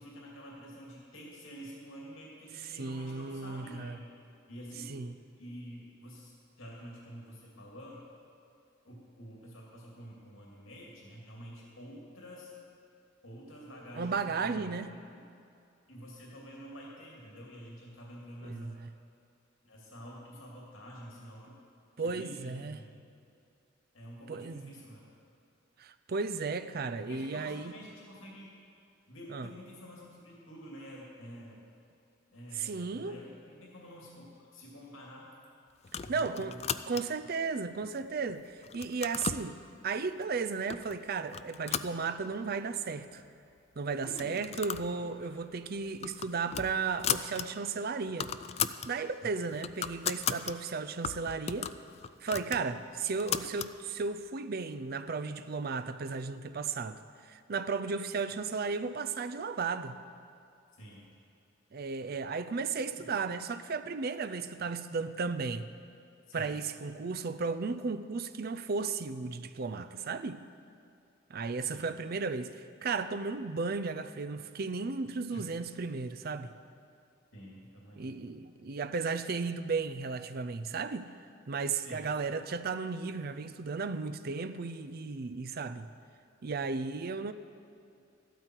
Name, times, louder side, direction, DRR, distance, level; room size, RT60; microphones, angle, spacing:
voice 1, 0.0-4.0 4.5-8.1 8.8-12.5 13.2-14.8 15.9-18.7 19.6-21.6 22.0-22.9 23.9-25.1 27.1-28.6 29.1-31.6 32.3-35.3 36.0-36.7 44.0-44.4 45.2-45.3 60.7-61.1 63.0-63.1 66.3-66.6 71.6-71.9 75.3-75.4 77.3-78.2 81.8-82.0, equal, 90° left, 2.5 m, -48 dB
voice 2, 2.7-4.0 4.9-5.1 13.9-14.9 18.4-18.9 22.0-22.8 24.3-24.7 25.8-27.7 29.3-29.5 32.5-33.2 36.1-36.5 36.9-43.2 43.8-48.3 48.9-51.7 52.2-60.0 61.7-65.7 66.3-70.4 71.3-76.5 78.0-81.1 81.5-85.9 86.4-87.3, right 4 dB, 50° right, 0.5 m, -35 dB
sound 1, 35.8-37.3 37.8-38.3 38.6-39.5 40.2-40.3 40.7-41.0 41.3-42.5 42.9-43.0 43.2-43.3 44.0-44.9 45.2-45.4 45.8-47.5 47.8-47.9 48.1-48.9 49.3-50.5 51.0-53.7, left 8 dB, 35° left, 0.3 m, -36 dB
14.0 x 12.5 x 4.6 m
head